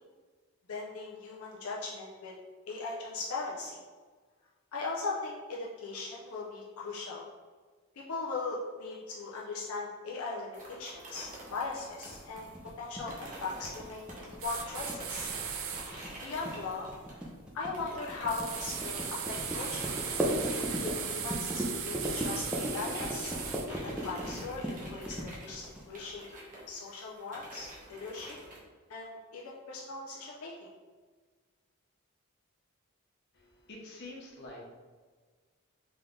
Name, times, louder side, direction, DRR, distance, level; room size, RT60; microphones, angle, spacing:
voice 1, 0.7-2.3 2.7-3.8 4.7-7.2 8.0-12.5 12.8-15.3 16.2-16.9 17.5-19.9 20.8-23.4 23.7-25.2 25.4-26.3 26.7-28.4 28.9-30.7, left 3 dB, 80° left, -4 dB, 0.6 m, -39 dB
sound 1, 10.5-17.4 17.7-28.6, right 1 dB, 35° right, 1.0 m, -47 dB
sound 2, 12.4-26.1, equal, 5° right, 0.5 m, -37 dB
sound 3, 14.4-15.9 18.3-23.7, right 7 dB, 70° right, 0.5 m, -37 dB
voice 2, 33.3-34.6, left 2 dB, 50° left, -2 dB, 0.9 m, -47 dB
3.7 x 3.3 x 3.7 m, 1.5 s
head